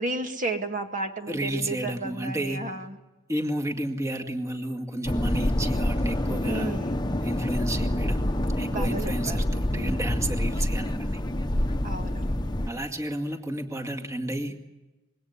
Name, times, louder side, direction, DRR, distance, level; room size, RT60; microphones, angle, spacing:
voice 1, 0.0-3.0 6.5-7.0 8.7-9.4 9.7-10.1 11.8-12.5, right 2 dB, 40° right, 5 dB, 2.1 m, -33 dB
voice 2, 1.3-2.6 3.3-6.8 7.2-11.2 12.7-14.6, right 1 dB, 15° right, 2 dB, 2.1 m, -32 dB
sound 1, 5.0-12.7, left 1 dB, 20° left, 1.1 m, -27 dB
26.0 x 22.0 x 9.7 m, 1.0 s
head